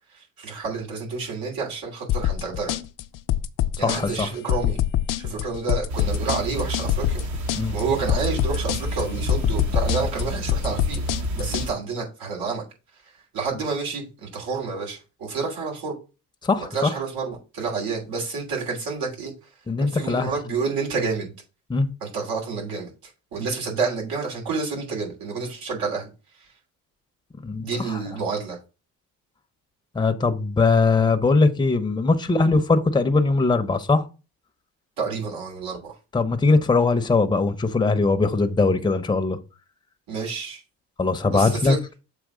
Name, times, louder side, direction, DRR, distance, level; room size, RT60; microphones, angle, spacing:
voice 1, 0.1-2.8 3.8-4.8 5.2-12.6 13.3-16.0 16.6-19.3 19.8-21.3 22.0-26.1 26.4-26.5 27.6-28.6 35.0-35.9 40.1-40.6 41.3-41.8, right 4 dB, 80° right, 3.0 m, -29 dB
sound 1, 2.1-11.7, left 12 dB, 65° left, 0.6 m, -25 dB
voice 2, 3.8-4.3 7.5-7.8 16.4-16.9 19.7-20.3 21.7-21.9 27.4-28.0 29.9-34.0 36.1-39.4 41.0-41.8, left 3 dB, 15° left, 0.7 m, -21 dB
sound 2, 5.9-11.7, right 1 dB, 55° right, 1.1 m, -29 dB
7.3 x 3.0 x 4.9 m
cardioid pair, 110°, 35 cm